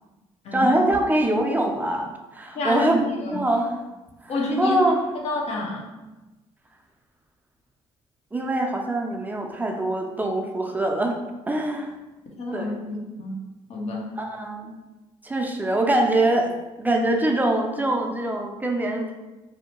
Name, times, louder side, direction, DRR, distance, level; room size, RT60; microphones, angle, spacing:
voice 1, 0.5-3.8 4.2-4.3 4.6-5.0 8.3-11.2 11.5-12.0 12.5-12.8 14.2-14.7 15.2-19.1, right 1 dB, 15° right, 2 dB, 0.4 m, -23 dB
voice 2, 2.5-3.4 4.3-4.8 5.2-5.9 12.4-13.4 13.7-14.1, left 2 dB, 60° left, -1 dB, 0.7 m, -28 dB
2.6 x 2.1 x 2.9 m, 1.1 s
cardioid pair, 80°, 12 cm